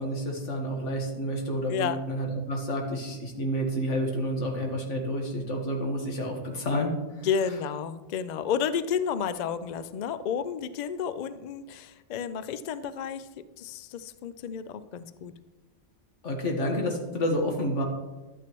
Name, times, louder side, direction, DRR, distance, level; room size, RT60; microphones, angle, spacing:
voice 1, 0.0-6.9 7.2-7.3 16.2-17.8, equal, 85° left, 1 dB, 1.8 m, -29 dB
voice 2, 7.2-15.3, left 7 dB, 60° left, 13 dB, 0.4 m, -31 dB
12.0 x 8.8 x 3.0 m, 1.2 s
omnidirectional pair, 1.2 m